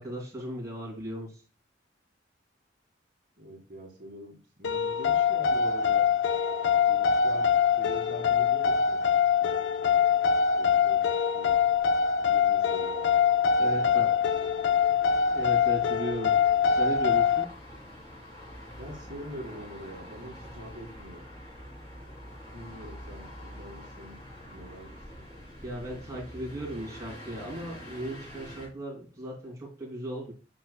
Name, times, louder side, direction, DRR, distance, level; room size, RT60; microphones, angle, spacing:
voice 1, 0.0-1.4 13.6-14.1 15.3-16.4 16.6-17.5 25.6-30.3, right 1 dB, 15° right, -3 dB, 2.9 m, -36 dB
voice 2, 3.4-6.1 6.9-7.5 7.8-9.0 9.4-10.2 10.6-11.1 11.3-11.6 12.2-13.0 13.4-14.3 18.8-21.2 22.4-24.2 24.5-25.2, equal, 50° right, 0 dB, 2.2 m, -44 dB
sound 1, 4.6-17.5, left 7 dB, 75° left, 0.4 m, -24 dB
sound 2, 11.5-28.7, equal, 20° left, 3.7 m, -47 dB
7.6 x 6.2 x 2.3 m, 0.36 s
head